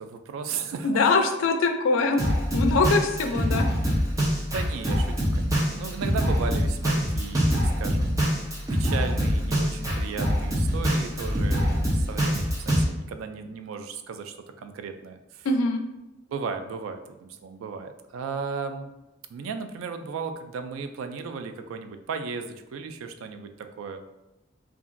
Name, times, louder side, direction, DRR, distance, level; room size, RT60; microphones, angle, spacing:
voice 1, 0.0-1.1 3.3-3.9 4.5-8.4 8.7-15.5 16.3-18.9 19.3-24.0, right 5 dB, 85° right, 8 dB, 0.3 m, -35 dB
voice 2, 0.8-2.2 2.5-3.7 15.4-15.8, left 3 dB, 85° left, 5 dB, 0.4 m, -23 dB
Drum kit, 2.2-12.8, equal, 15° right, 0.5 m, -24 dB
2.8 x 2.4 x 2.5 m, 0.97 s
head